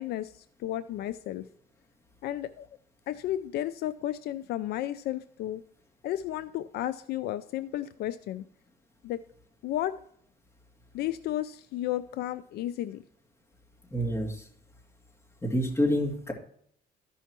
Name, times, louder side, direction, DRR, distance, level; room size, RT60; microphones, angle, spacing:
voice 1, 0.0-1.5 2.2-2.7 3.1-5.6 6.0-8.4 9.0-9.2 9.6-10.0 10.9-13.0, left 13 dB, 70° left, 13 dB, 0.4 m, -33 dB
voice 2, 13.9-14.4 15.4-16.3, equal, 15° left, -1 dB, 2.4 m, -27 dB
14.0 x 5.6 x 2.9 m, 0.65 s
cardioid pair, 110°, 17 cm